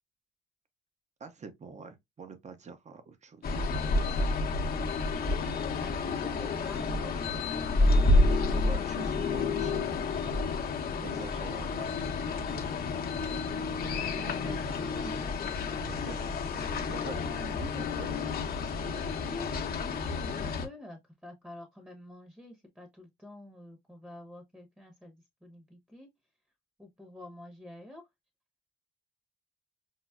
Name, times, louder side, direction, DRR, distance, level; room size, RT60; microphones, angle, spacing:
voice 1, 1.2-4.3 8.3-10.2 11.0-11.9 14.0-14.2 15.8-16.3 16.5-18.1, right 5 dB, 35° right, 0.8 m, -46 dB
sound 1, 3.4-20.7, left 3 dB, 50° left, 0.8 m, -30 dB
voice 2, 5.8-7.4 14.0-15.3 19.2-26.1 26.8-28.0, left 1 dB, 5° right, 0.9 m, -48 dB
5.6 x 2.0 x 2.3 m
cardioid pair, 90°, 20 cm